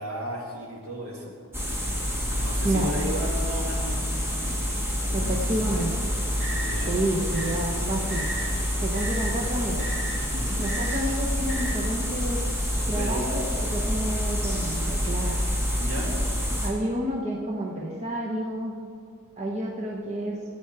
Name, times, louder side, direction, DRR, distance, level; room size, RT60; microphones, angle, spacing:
voice 1, 0.0-1.3 2.4-4.0 5.0-5.9 6.5-6.9 10.3-10.7 12.9-13.5 15.8-16.2, equal, 70° right, -2 dB, 2.3 m, -34 dB
sound 1, 1.5-16.7, equal, 10° right, 1.4 m, -27 dB
voice 2, 5.1-5.9 6.9-8.3 8.8-9.9 10.6-12.4 12.9-13.4 13.7-15.4 16.6-18.8 19.4-20.4, right 1 dB, 30° right, -2 dB, 0.9 m, -29 dB
sound 2, 6.2-11.7, right 1 dB, 55° right, 2.9 m, -38 dB
14.5 x 8.8 x 4.7 m, 2.2 s
head